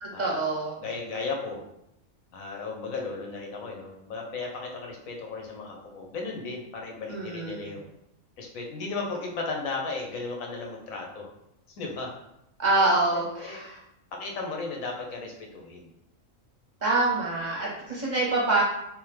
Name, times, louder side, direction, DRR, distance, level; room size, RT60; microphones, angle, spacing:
voice 1, 0.0-0.8 7.1-7.7 12.6-13.8 16.8-18.6, right 2 dB, 45° right, -4 dB, 0.7 m, -26 dB
voice 2, 0.8-1.7 2.3-7.9 8.4-11.3 11.7-12.1 12.7-13.6 14.1-15.9, left 3 dB, 90° left, 0 dB, 1.2 m, -35 dB
3.5 x 2.8 x 3.2 m, 0.82 s
omnidirectional pair, 1.4 m